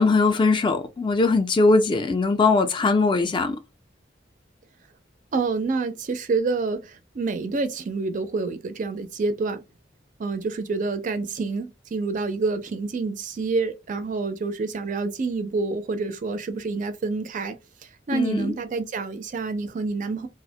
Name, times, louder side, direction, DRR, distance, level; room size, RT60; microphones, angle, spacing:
voice 1, 0.0-3.6 18.1-18.5, left 3 dB, 25° left, 0.3 m, -20 dB
voice 2, 5.3-6.8 7.2-9.6 10.2-17.5 18.1-20.3, right 3 dB, 45° right, 0.4 m, -27 dB
2.4 x 2.1 x 2.7 m
head